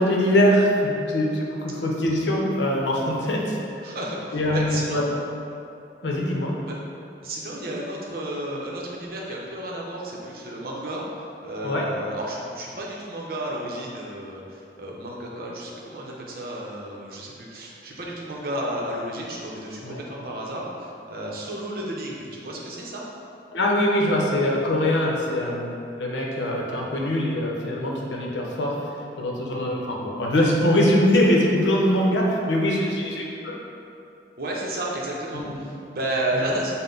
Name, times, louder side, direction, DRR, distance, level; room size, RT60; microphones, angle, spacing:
voice 1, 0.0-3.6 4.3-5.0 6.0-6.5 11.6-11.8 19.8-20.0 23.5-28.9 29.2-33.6 35.4-35.6 36.3-36.5, left 1 dB, 85° left, -2 dB, 0.7 m, -23 dB
voice 2, 3.8-5.1 6.7-6.8 7.2-23.1 34.4-36.7, right 1 dB, 55° right, -3 dB, 0.7 m, -32 dB
5.7 x 2.1 x 3.8 m, 2.6 s
head